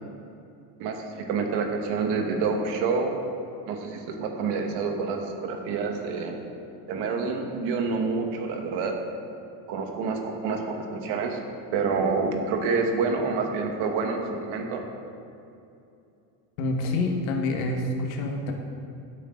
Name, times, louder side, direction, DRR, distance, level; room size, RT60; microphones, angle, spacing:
voice 1, 0.8-3.2 3.7-6.4 6.9-9.0 9.7-11.4 11.7-14.8, right 4 dB, 55° right, 3 dB, 1.6 m, -28 dB
voice 2, 16.6-18.5, left 2 dB, 75° left, 2 dB, 1.8 m, -27 dB
15.5 x 8.3 x 3.8 m, 2.7 s
cardioid pair, 155°, 49 cm